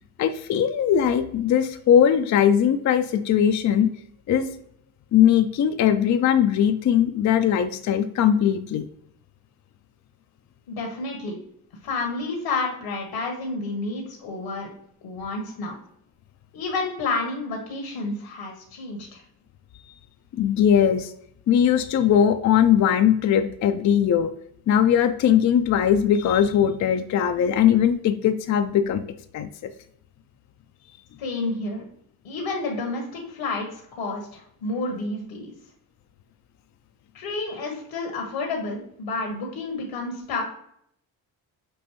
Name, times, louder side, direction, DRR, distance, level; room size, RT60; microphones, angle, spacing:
voice 1, 0.2-3.9 4.3-4.5 5.1-8.8 20.3-21.1 21.5-24.3 24.7-29.0 29.3-29.7, left 9 dB, 40° left, 8 dB, 0.4 m, -20 dB
voice 2, 10.7-11.4 11.8-14.7 15.0-15.8 16.5-19.2 31.2-31.8 32.2-35.5 37.1-40.4, left 3 dB, 70° left, 1 dB, 1.2 m, -30 dB
6.1 x 2.6 x 3.0 m, 0.70 s
supercardioid pair, 65°, 48 cm